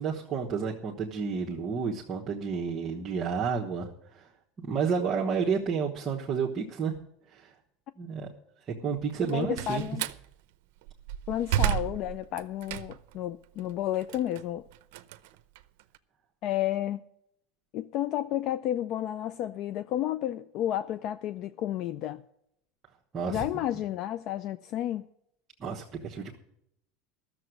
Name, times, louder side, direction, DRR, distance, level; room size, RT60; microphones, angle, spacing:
voice 1, 0.0-3.9 4.1-4.3 4.6-6.9 7.3-7.5 8.0-8.3 8.7-9.8 23.1-23.4 25.6-26.4, right 6 dB, 25° right, 1.2 m, -30 dB
Slam, 9.1-10.2 10.8-13.2 13.6-16.0, right 12 dB, 75° right, 0.6 m, -32 dB
voice 2, 9.3-10.1 11.3-14.6 16.4-17.0 17.7-22.2 23.3-25.1, left 12 dB, 45° left, 0.4 m, -31 dB
13.0 x 7.0 x 7.8 m
supercardioid pair, 150°, 0 cm